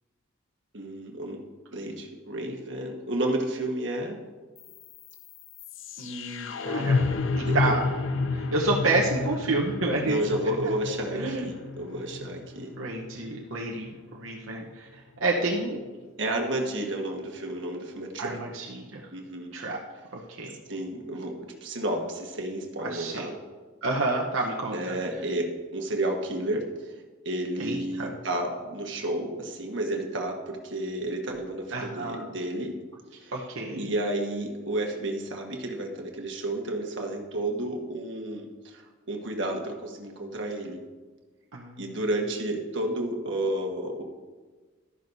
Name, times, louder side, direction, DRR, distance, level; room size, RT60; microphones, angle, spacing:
voice 1, 0.7-1.4 1.7-4.2 7.4-7.8 10.0-12.7 16.2-18.4 19.1-19.5 20.7-23.3 24.7-26.7 27.2-32.8 33.2-33.5 33.7-38.8 39.1-40.8 41.8-44.0, right 1 dB, 60° right, 1 dB, 1.5 m, -31 dB
sound 1, 4.6-14.6, left 4 dB, 70° left, 0.6 m, -31 dB
voice 2, 6.0-7.0 7.4-7.8 8.3-10.2 10.6-10.7 11.2-11.5 12.8-14.9 15.2-15.8 18.2-19.0 19.5-19.8 20.1-20.6 22.8-23.3 23.8-25.0 27.6-28.1 31.7-32.3 33.3-33.9 41.5-41.8, right 2 dB, 80° right, -2 dB, 1.0 m, -29 dB
12.5 x 10.5 x 2.7 m, 1.4 s
head